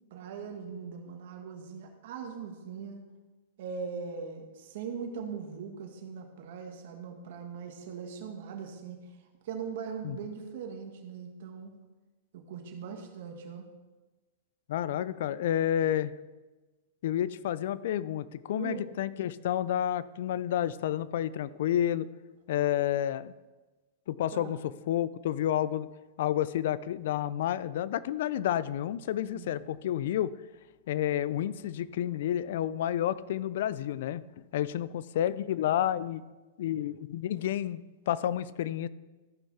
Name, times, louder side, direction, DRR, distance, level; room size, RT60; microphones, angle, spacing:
voice 1, 0.1-3.0 3.6-9.0 9.4-11.7 12.3-13.6 18.5-18.8 24.3-24.6 29.3-29.5, right 6 dB, 60° right, 3 dB, 1.9 m, -40 dB
voice 2, 14.7-16.1 17.0-22.1 22.5-23.3 24.1-25.9 26.2-30.3 30.9-34.2 34.5-36.2 36.6-38.9, left 11 dB, 65° left, 18 dB, 0.4 m, -30 dB
14.0 x 5.7 x 4.2 m, 1.2 s
hypercardioid pair, 135°, 0 cm